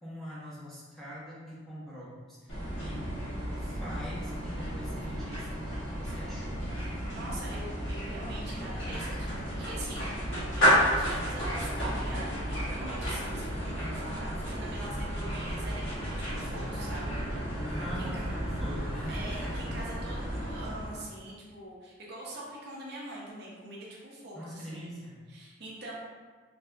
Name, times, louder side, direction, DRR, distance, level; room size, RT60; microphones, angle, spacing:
voice 1, 0.0-3.2 3.6-6.9 17.6-19.5 24.3-25.2, equal, ahead, -9 dB, 0.6 m, -43 dB
sound 1, 2.5-21.1, equal, 70° left, 1.3 m, -32 dB
voice 2, 2.7-3.4 7.1-17.2 18.0-18.2 19.1-24.8 25.3-25.9, right 1 dB, 55° right, -4 dB, 0.6 m, -43 dB
3.3 x 2.7 x 2.2 m, 1.5 s
head